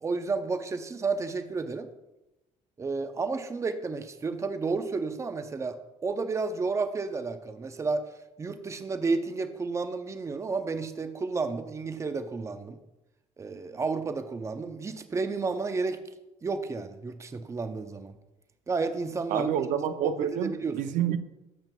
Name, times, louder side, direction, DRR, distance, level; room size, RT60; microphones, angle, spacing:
voice 1, 0.0-1.9 2.8-5.8 6.0-8.0 8.4-12.8 13.4-16.0 16.4-18.1 18.7-19.5 20.0-20.8, right 4 dB, 20° right, 9 dB, 0.6 m, -31 dB
voice 2, 19.3-21.2, right 9 dB, 75° right, 10 dB, 0.5 m, -28 dB
12.0 x 7.2 x 2.3 m, 0.97 s
cardioid pair, 110°, 13 cm